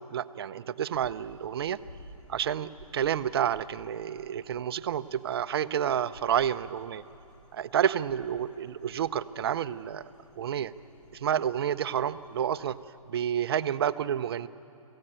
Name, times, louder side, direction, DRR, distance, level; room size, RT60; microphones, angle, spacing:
voice 1, 0.0-1.8 2.3-7.0 7.5-10.0 10.4-10.7 11.1-12.8 13.1-14.5, right 9 dB, 45° right, 13 dB, 0.6 m, -29 dB
sound 1, 0.9-12.8, equal, 60° left, 6.3 m, -55 dB
22.0 x 16.0 x 8.8 m, 2.8 s
hypercardioid pair, 160°, 19 cm